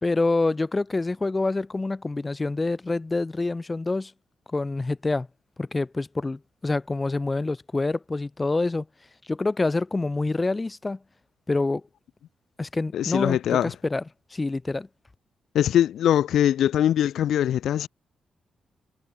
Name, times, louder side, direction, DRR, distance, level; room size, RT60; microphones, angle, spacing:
voice 1, 0.0-4.1 4.5-5.3 5.6-8.9 9.3-11.0 11.5-11.8 12.6-14.0 14.3-14.9, left 3 dB, 20° left, 3.4 m, -26 dB
voice 2, 12.9-13.7 15.5-17.9, left 10 dB, 85° left, 1.0 m, -22 dB
wide cardioid pair, 145°, 0 cm